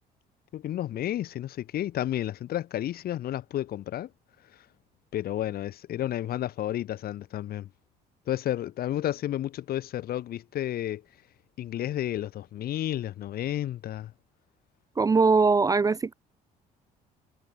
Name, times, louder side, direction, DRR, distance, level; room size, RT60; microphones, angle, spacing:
voice 1, 0.5-4.1 5.1-7.7 8.3-11.0 11.6-14.1, left 12 dB, 65° left, 2.5 m, -31 dB
voice 2, 15.0-16.1, right 4 dB, 20° right, 0.5 m, -21 dB
cardioid pair, 110°, 17 cm